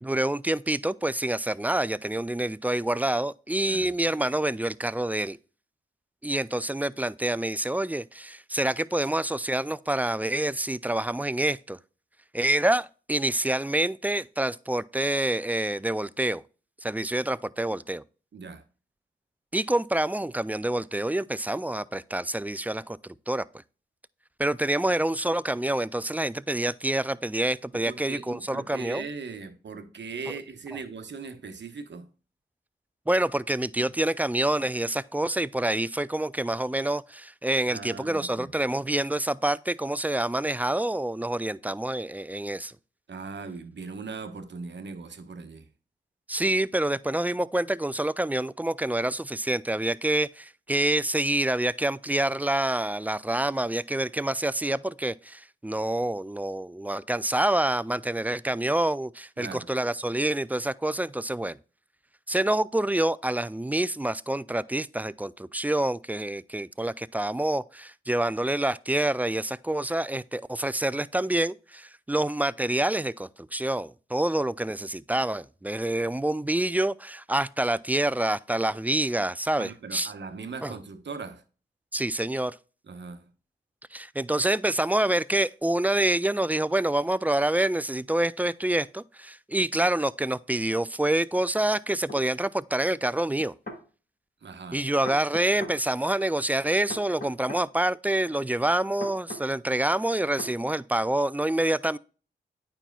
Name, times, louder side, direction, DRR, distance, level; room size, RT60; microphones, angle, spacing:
voice 1, 0.0-5.4 6.2-11.8 12.3-16.4 16.8-18.0 19.5-23.4 24.4-29.1 30.3-30.4 33.1-42.7 46.3-61.6 62.3-80.1 80.6-80.8 81.9-82.5 83.9-93.5 94.7-102.0, right 1 dB, 10° right, 0.3 m, -27 dB
voice 2, 18.3-18.6 27.7-32.1 37.7-38.5 43.1-45.7 59.4-59.7 79.6-81.4 82.9-83.2 94.4-94.8, right 4 dB, 60° right, 1.1 m, -39 dB
sound 1, 92.1-92.2 93.4-93.8 95.0-95.8 96.9-97.7 99.0-99.5 100.4-100.6, left 2 dB, 45° left, 2.0 m, -39 dB
8.9 x 5.6 x 2.3 m
supercardioid pair, 40°, 21 cm